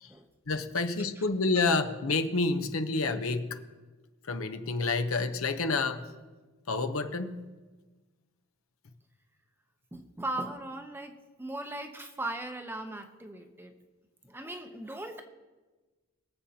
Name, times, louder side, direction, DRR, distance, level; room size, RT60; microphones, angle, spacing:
voice 1, 0.5-3.5 4.3-6.0 6.7-7.4, left 3 dB, 75° left, 8 dB, 0.8 m, -29 dB
voice 2, 9.9-11.1 11.4-13.7 14.2-15.2, right 1 dB, 10° right, 6 dB, 0.7 m, -38 dB
22.0 x 7.8 x 2.8 m, 1.3 s
head